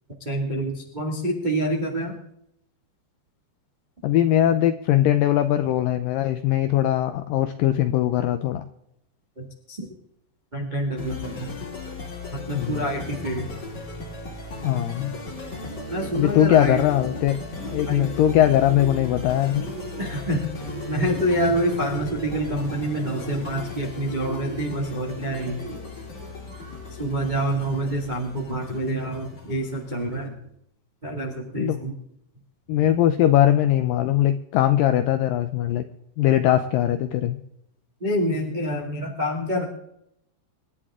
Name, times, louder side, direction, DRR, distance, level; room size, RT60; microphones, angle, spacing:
voice 1, 0.2-2.2 9.4-9.9 10.5-11.5 12.3-13.5 15.9-16.8 17.9-18.1 20.0-20.5 20.9-25.6 27.0-30.3 31.0-31.9 36.5-36.6 38.0-39.6, right 1 dB, 20° right, -1 dB, 1.2 m, -27 dB
voice 2, 4.0-8.6 12.6-12.8 14.6-15.1 16.1-17.4 17.7-19.6 31.6-31.8 32.7-35.8 36.2-37.4, left 12 dB, 90° left, 9 dB, 1.9 m, -20 dB
sound 1, 11.0-30.3, left 3 dB, 30° left, 2.6 m, -37 dB
Bird, 15.4-28.1, right 2 dB, 70° right, 4.9 m, -41 dB
26.5 x 11.0 x 3.7 m, 0.77 s
omnidirectional pair, 4.8 m